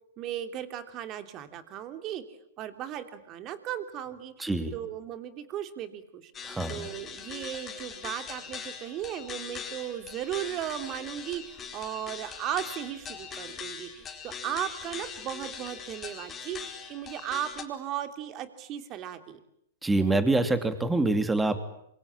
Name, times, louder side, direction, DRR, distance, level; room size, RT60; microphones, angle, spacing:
voice 1, 0.2-2.2 2.6-6.3 6.7-19.4, right 11 dB, 35° right, 9 dB, 3.0 m, -36 dB
voice 2, 4.4-4.7 6.5-6.9 19.8-21.6, right 2 dB, 10° right, 10 dB, 2.8 m, -25 dB
sound 1, 6.3-17.6, left 7 dB, 20° left, 4.6 m, -41 dB
26.5 x 24.0 x 8.8 m, 0.76 s
hypercardioid pair, 120°, 0 cm